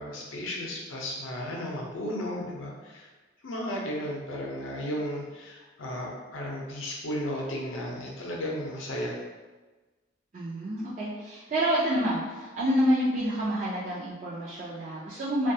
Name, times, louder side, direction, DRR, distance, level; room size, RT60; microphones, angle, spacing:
voice 1, 0.0-3.1 3.4-9.2, equal, 80° left, -2 dB, 0.6 m, -34 dB
voice 2, 10.3-15.5, equal, 35° right, -10 dB, 0.4 m, -28 dB
2.2 x 2.2 x 2.6 m, 1.3 s
head